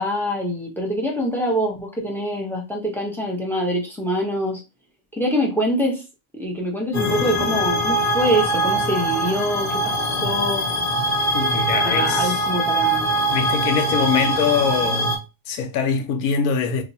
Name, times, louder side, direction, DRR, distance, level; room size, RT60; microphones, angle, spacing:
voice 1, 0.0-4.6 5.1-6.0 6.3-10.7 11.8-13.1, equal, ahead, 0.5 m, -24 dB
sound 1, 6.9-15.2, right 1 dB, 50° left, 0.8 m, -22 dB
voice 2, 11.3-12.5 13.3-16.8, left 6 dB, 90° left, 1.1 m, -23 dB
2.9 x 2.3 x 4.0 m
omnidirectional pair, 1.5 m